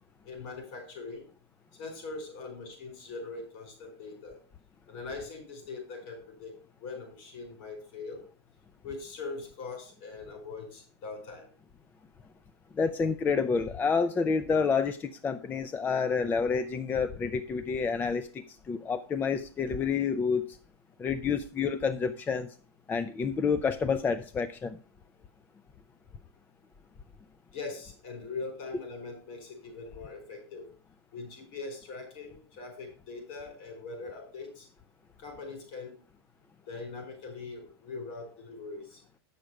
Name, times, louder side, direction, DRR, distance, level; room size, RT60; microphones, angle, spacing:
voice 1, 0.2-1.3 1.7-4.4 4.9-6.5 6.8-8.2 8.8-11.5 27.5-30.7 31.1-34.7 35.2-36.0 36.7-39.0, left 4 dB, 55° left, 3 dB, 5.0 m, -41 dB
voice 2, 12.7-20.6 21.0-22.5 22.9-24.8, left 5 dB, 15° left, 11 dB, 0.3 m, -29 dB
8.0 x 6.5 x 4.7 m, 0.40 s
supercardioid pair, 135°, 14 cm